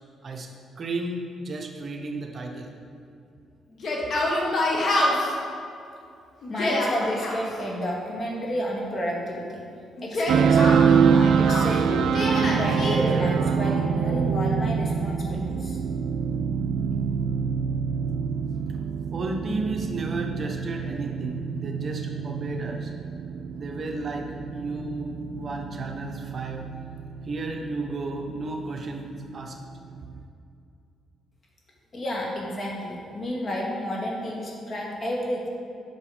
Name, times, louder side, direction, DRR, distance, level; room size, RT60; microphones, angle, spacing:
voice 1, 0.8-2.7 19.1-22.9 23.5-26.7 27.2-29.6, right 2 dB, 45° right, 2 dB, 0.9 m, -33 dB
Yell, 3.7-5.3 6.4-7.4 10.0-11.7 12.1-13.0, left 1 dB, 55° left, 1.5 m, -26 dB
voice 2, 6.5-9.7 10.0-15.8 31.9-35.5, equal, 40° left, -3 dB, 1.9 m, -31 dB
sound 1, 10.3-30.2, right 6 dB, 75° right, 0.4 m, -25 dB
8.1 x 6.1 x 5.0 m, 2.5 s
cardioid pair, 90°, 0 cm